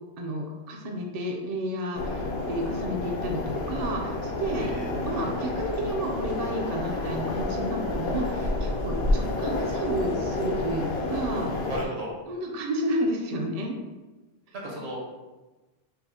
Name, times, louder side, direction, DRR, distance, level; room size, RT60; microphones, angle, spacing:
voice 1, 0.2-4.7 5.0-11.5 12.3-13.8 14.6-14.8, right 1 dB, 50° right, 1 dB, 0.5 m, -31 dB
sound 1, 1.9-11.9, left 2 dB, 70° left, 0.8 m, -29 dB
voice 2, 4.5-4.9 11.7-12.1 14.6-15.0, right 1 dB, 70° right, -3 dB, 1.3 m, -34 dB
5.4 x 2.0 x 2.8 m, 1.1 s
omnidirectional pair, 1.1 m